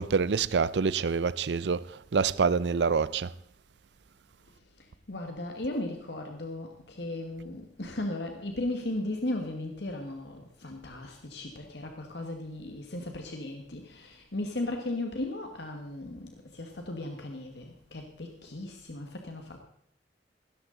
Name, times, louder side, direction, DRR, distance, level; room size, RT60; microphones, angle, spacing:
voice 1, 0.0-3.3, right 5 dB, 75° right, 0.5 m, -26 dB
voice 2, 4.5-19.6, left 1 dB, 70° left, 1.5 m, -36 dB
16.5 x 13.0 x 3.9 m
head